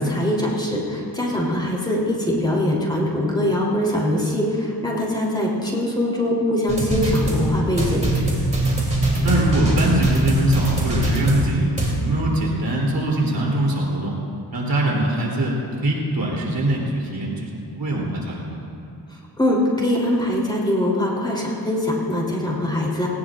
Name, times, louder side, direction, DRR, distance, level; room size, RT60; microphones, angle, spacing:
voice 1, 0.1-8.0 19.4-23.1, left 1 dB, 10° left, -4 dB, 3.3 m, -22 dB
sound 1, 6.7-11.9, right 1 dB, 15° right, 3.1 m, -21 dB
voice 2, 9.2-11.7 12.0-14.1 14.5-18.6, right 1 dB, 55° right, -3 dB, 3.3 m, -22 dB
19.0 x 18.5 x 2.5 m, 2.5 s
wide cardioid pair, 130°, 42 cm